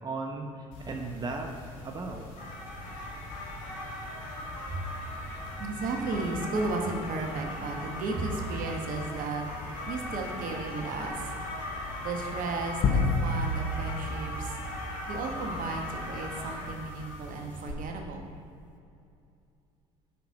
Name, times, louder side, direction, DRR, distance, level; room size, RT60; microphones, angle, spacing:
voice 1, 0.0-2.3, right 3 dB, 25° right, 2 dB, 0.9 m, -36 dB
sound 1, 0.7-17.7, left 1 dB, 75° left, 1.6 m, -39 dB
voice 2, 5.6-9.4 9.9-11.3 12.0-14.6 15.1-18.2, right 3 dB, 55° right, 2 dB, 1.1 m, -34 dB
sound 2, 12.8-15.4, left 3 dB, 50° left, 0.7 m, -29 dB
5.9 x 5.8 x 6.8 m, 2.5 s
hypercardioid pair, 60°, 17 cm